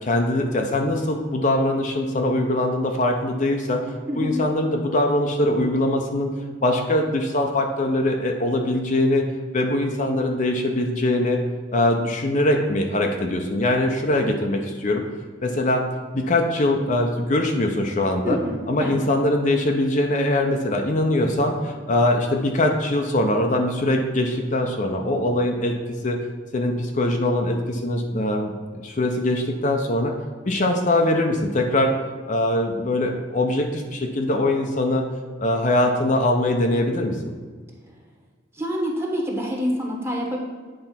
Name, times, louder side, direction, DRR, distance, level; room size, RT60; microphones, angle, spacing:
voice 1, 0.0-3.8 4.2-6.3 6.6-9.2 9.5-11.4 11.7-15.0 15.4-15.9 16.1-18.4 18.7-25.8 26.0-26.2 26.5-28.5 28.8-30.1 30.5-32.0 32.3-35.0 35.4-37.3, left 1 dB, 40° left, 3 dB, 0.6 m, -22 dB
voice 2, 18.2-19.0 38.5-40.4, equal, 15° right, 0 dB, 1.2 m, -27 dB
8.9 x 3.4 x 5.7 m, 1.5 s
head